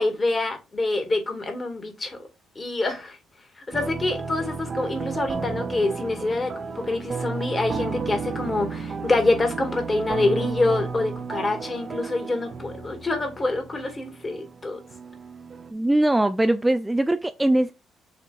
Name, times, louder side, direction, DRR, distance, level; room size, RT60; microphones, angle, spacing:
voice 1, 0.0-2.3 2.6-3.2 3.7-14.8, left 2 dB, 30° left, 2.0 m, -26 dB
sound 1, 3.7-15.7, right 4 dB, 45° right, 0.7 m, -33 dB
voice 2, 15.7-17.7, right 1 dB, 10° right, 0.4 m, -21 dB
6.8 x 2.9 x 2.5 m
supercardioid pair, 60°, 0 cm